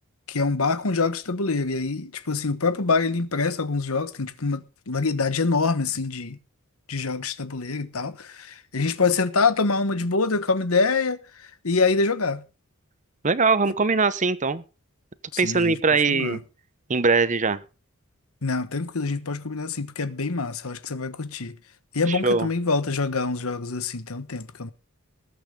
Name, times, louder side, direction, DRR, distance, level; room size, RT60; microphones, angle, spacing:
voice 1, 0.3-6.4 6.9-11.2 11.6-12.4 15.3-16.4 18.4-21.5 21.9-24.7, left 4 dB, 75° left, 1.2 m, -25 dB
voice 2, 13.2-14.6 15.4-16.4 16.9-17.6 22.1-22.5, right 4 dB, 35° right, 0.9 m, -21 dB
20.5 x 8.8 x 3.7 m
head